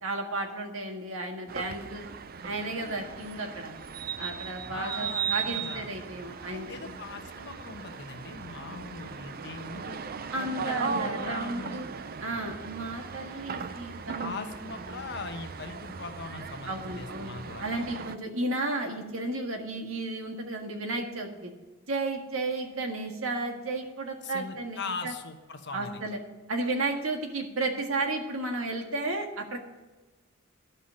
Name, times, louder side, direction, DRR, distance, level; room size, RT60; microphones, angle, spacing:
voice 1, 0.0-2.1 2.4-3.7 4.2-6.9 10.3-11.9 12.2-14.4 14.9-15.0 16.7-17.3 17.6-21.5 21.9-25.1 25.7-26.2 26.5-29.6, right 2 dB, 80° right, 3 dB, 1.7 m, -33 dB
sound 1, 1.5-18.2, right 6 dB, 45° right, 0.5 m, -38 dB
voice 2, 4.7-5.9 6.4-10.0 10.4-11.8 14.2-17.8 24.2-26.0, left 4 dB, 55° left, 6 dB, 1.1 m, -40 dB
12.0 x 5.7 x 7.7 m, 1.2 s
head